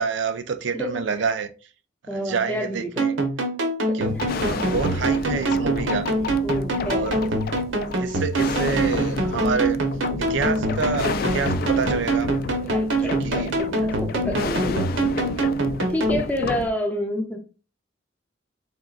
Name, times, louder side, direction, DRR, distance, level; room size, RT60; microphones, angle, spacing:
voice 1, 0.0-1.5 2.1-3.1 3.9-6.1 6.8-7.4 8.0-9.8 10.2-12.3 13.0-13.5, right 5 dB, 65° right, 0.5 m, -27 dB
voice 2, 2.1-3.1 3.9-4.4 5.3-5.6 6.4-7.1 12.6-14.9 15.9-17.4, equal, 10° left, 0.6 m, -29 dB
sound 1, 3.0-16.2, right 2 dB, 90° right, 0.9 m, -25 dB
sound 2, 4.0-16.7, left 4 dB, 50° left, 0.3 m, -30 dB
3.7 x 3.6 x 2.4 m
head